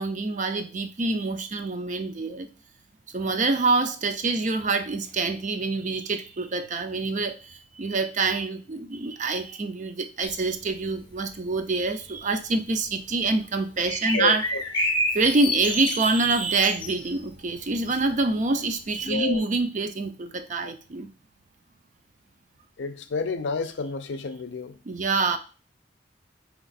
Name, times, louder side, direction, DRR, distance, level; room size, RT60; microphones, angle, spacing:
voice 1, 0.0-2.5 3.1-14.4 15.1-21.1 24.8-25.4, right 3 dB, 40° right, 0.5 m, -26 dB
sound 1, 10.2-11.5 11.8-12.2 12.6-12.7 12.9-13.3 13.8-18.2 18.5-18.6 18.9-19.0, left 1 dB, 25° left, 0.7 m, -30 dB
voice 2, 14.1-14.6 19.0-19.4 22.8-24.8, left 4 dB, 70° left, 0.5 m, -30 dB
4.3 x 3.0 x 4.0 m
head